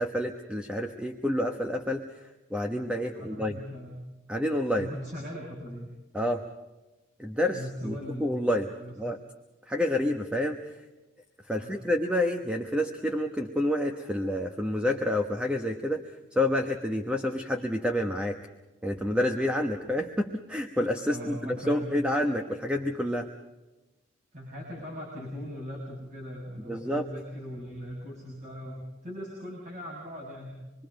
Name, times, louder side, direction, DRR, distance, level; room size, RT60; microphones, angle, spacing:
voice 1, 0.0-2.0 2.5-3.6 4.3-4.9 6.1-6.5 7.2-7.9 8.2-8.7 9.0-9.2 9.7-10.8 11.5-16.0 16.3-18.4 18.8-23.3 26.7-27.1, left 1 dB, 5° right, 4 dB, 1.1 m, -28 dB
voice 2, 3.1-4.0 4.8-5.9 7.5-8.3 8.8-9.0 11.5-11.8 21.1-22.0 24.3-30.5, equal, 35° right, -3 dB, 6.2 m, -39 dB
27.0 x 22.0 x 5.3 m, 1.1 s
head